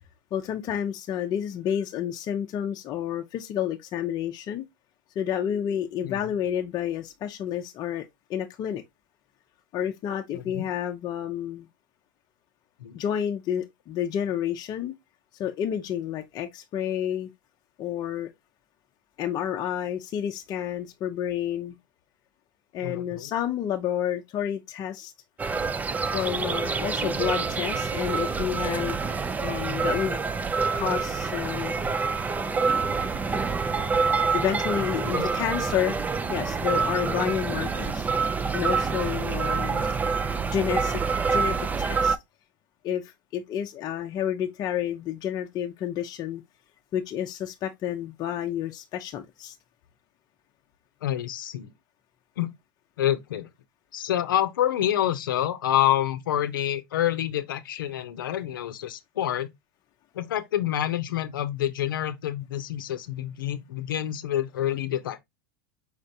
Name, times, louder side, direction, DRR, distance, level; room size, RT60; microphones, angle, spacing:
voice 1, 0.3-4.6 5.2-8.8 9.7-11.7 12.9-14.9 15.4-17.3 17.8-18.3 19.2-21.7 22.7-25.1 26.1-29.1 29.4-30.2 30.7-31.7 34.3-36.0 36.3-38.1 38.5-39.8 40.5-41.0 41.3-42.2 42.8-46.4 46.9-49.6, left 10 dB, 40° left, 0.6 m, -30 dB
voice 2, 10.3-10.7 12.8-13.0 22.8-23.3 34.9-35.3 37.7-37.9 39.6-40.2 51.0-51.7 52.4-52.5 53.0-53.5 53.9-59.5 60.1-65.2, left 12 dB, 80° left, 0.6 m, -28 dB
sound 1, 25.4-42.2, right 5 dB, 15° right, 0.4 m, -27 dB
4.9 x 3.3 x 2.7 m
hypercardioid pair, 105°, 11 cm